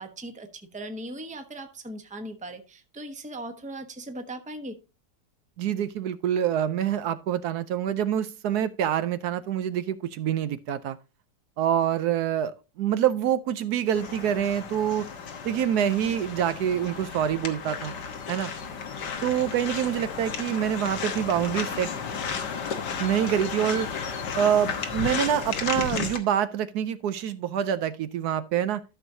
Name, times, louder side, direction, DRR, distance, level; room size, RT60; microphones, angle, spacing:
voice 1, 0.0-4.8, right 1 dB, 5° right, 0.8 m, -39 dB
voice 2, 5.6-11.0 11.6-15.1 15.4-17.9 18.3-18.5 19.2-21.9 23.0-23.9 24.4-28.8, right 9 dB, 75° right, 1.1 m, -26 dB
sound 1, 13.9-26.2, left 6 dB, 85° left, 1.8 m, -33 dB
13.0 x 6.3 x 2.7 m
omnidirectional pair, 1.8 m